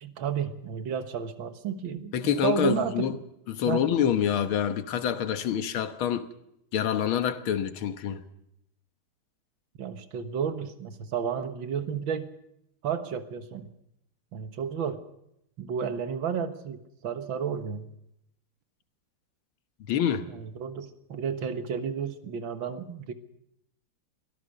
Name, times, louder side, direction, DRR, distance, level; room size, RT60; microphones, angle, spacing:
voice 1, 0.0-3.1 3.7-3.8 9.8-12.3 12.8-13.7 14.3-15.0 15.6-17.8 20.3-23.1, right 7 dB, 75° right, 2.1 m, -32 dB
voice 2, 2.1-3.2 3.5-6.3 6.7-8.2 19.9-20.3, left 9 dB, 85° left, 2.0 m, -26 dB
23.0 x 17.0 x 6.6 m
omnidirectional pair, 2.2 m